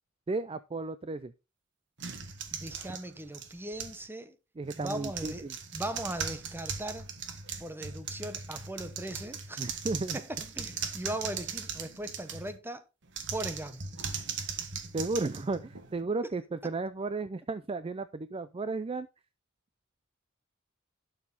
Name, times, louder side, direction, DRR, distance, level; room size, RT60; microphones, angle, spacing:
voice 1, 0.3-1.3 4.6-5.5 9.6-10.2 14.9-19.1, right 3 dB, 25° right, 0.4 m, -34 dB
sound 1, 2.0-4.1 4.6-12.6 13.1-16.0, right 6 dB, 60° right, 1.5 m, -39 dB
voice 2, 2.5-4.4 4.7-5.5 5.7-7.1 7.6-9.8 10.1-12.8 13.3-13.8, right 1 dB, 10° right, 1.0 m, -39 dB
11.5 x 6.5 x 4.0 m
head